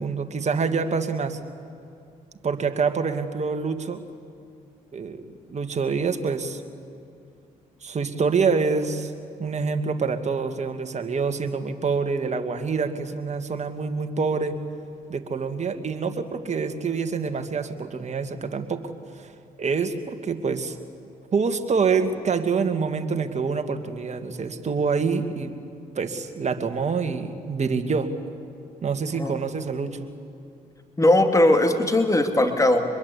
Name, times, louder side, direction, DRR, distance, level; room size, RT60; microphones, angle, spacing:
voice 1, 0.0-1.4 2.4-4.0 4.9-6.6 7.8-9.1 9.4-14.6 15.1-18.9 19.2-19.3 19.6-20.8 21.3-25.5 26.0-28.1 28.8-30.1, right 5 dB, 45° right, 6 dB, 2.2 m, -26 dB
voice 2, 31.0-32.8, left 1 dB, 20° left, 6 dB, 2.6 m, -19 dB
24.5 x 21.5 x 8.5 m, 2.5 s
supercardioid pair, 60°, 17 cm